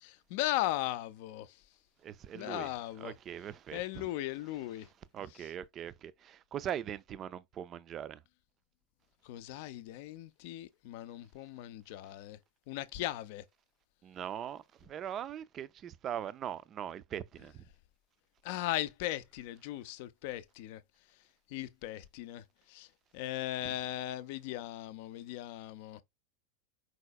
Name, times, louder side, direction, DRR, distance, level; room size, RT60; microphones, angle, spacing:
voice 1, 0.0-1.6 2.3-3.1 3.7-4.9 5.4-5.5 9.2-12.4 12.7-13.4 18.4-20.8 21.5-22.9 23.1-26.0, left 15 dB, 55° left, 0.4 m, -38 dB
voice 2, 2.0-2.7 3.0-4.1 5.1-8.2 14.0-17.7 23.6-23.7, right 10 dB, 35° right, 0.4 m, -41 dB
4.8 x 4.0 x 2.2 m
hypercardioid pair, 90°, 0 cm